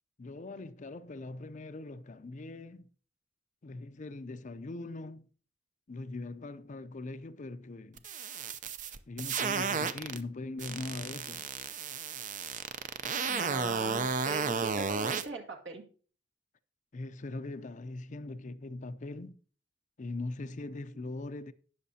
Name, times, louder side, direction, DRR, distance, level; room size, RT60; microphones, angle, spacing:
voice 1, 0.2-2.9 3.6-5.3 5.9-8.0 9.1-11.4 16.9-19.4 20.0-21.5, left 2 dB, 40° left, 0.5 m, -41 dB
sound 1, 8.0-10.2 10.6-15.2, right 5 dB, 40° right, 0.5 m, -33 dB
voice 2, 13.3-15.8, right 3 dB, 65° right, 2.0 m, -41 dB
18.5 x 6.5 x 2.8 m
head